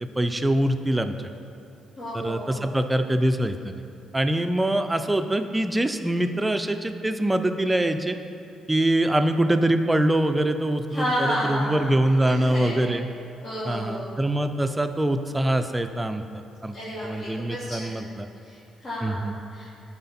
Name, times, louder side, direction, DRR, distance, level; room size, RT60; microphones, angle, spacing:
voice 1, 0.2-1.1 2.1-3.8 4.1-8.2 8.7-13.1 13.6-16.8 17.0-18.3 19.0-19.4, right 1 dB, 15° right, 8 dB, 0.5 m, -24 dB
voice 2, 2.0-2.6 10.9-11.9 12.2-12.9 13.4-14.2 16.7-18.0 18.4-19.3 19.5-19.7, equal, 55° left, -10 dB, 1.8 m, -31 dB
11.5 x 4.4 x 4.3 m, 2.5 s
cardioid pair, 90°, 0 cm